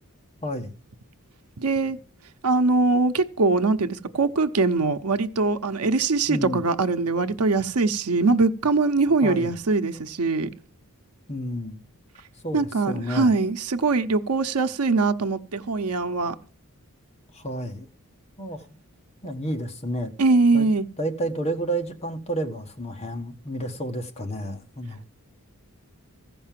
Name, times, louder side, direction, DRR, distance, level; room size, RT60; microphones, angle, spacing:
voice 1, 0.4-0.8 6.3-6.6 9.2-9.5 11.3-11.8 12.4-13.4 17.3-17.9 18.4-18.7 19.2-20.1 20.5-20.7 21.0-25.1, right 1 dB, 30° left, 1.3 m, -30 dB
voice 2, 1.6-2.0 2.4-10.5 12.5-16.3 20.2-20.8, right 3 dB, 85° right, 0.8 m, -22 dB
15.0 x 5.4 x 7.5 m
head